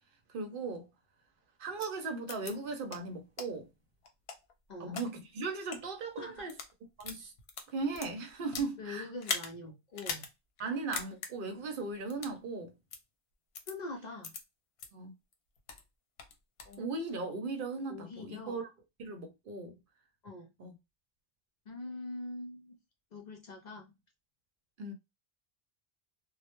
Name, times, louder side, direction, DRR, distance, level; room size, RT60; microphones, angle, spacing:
voice 1, 0.3-0.9 1.6-3.7 4.8-6.5 7.0-7.3 7.7-9.1 10.6-12.7 14.9-15.1 16.8-18.7 19.0-19.8 20.6-20.7 24.8-24.9, right 3 dB, 65° right, 0.7 m, -37 dB
sound 1, 1.8-1.9 2.3-2.5 2.9-3.0 3.4-3.5 4.0-5.0 5.6-5.8 6.4-6.7 7.0-8.7 9.2-9.5 9.9-10.3 10.6-10.7 10.9-11.3 12.1-12.4 12.9-13.0 13.5-13.7 14.2-14.4 14.8-14.9 15.3-15.8 16.2-16.8, left 5 dB, 80° left, 0.8 m, -39 dB
voice 2, 8.8-10.3 13.7-14.3 16.6-16.8 17.9-18.6 20.2-20.5 21.7-22.8 23.1-23.9, left 2 dB, 55° left, 0.5 m, -43 dB
2.1 x 2.0 x 2.8 m
omnidirectional pair, 1.0 m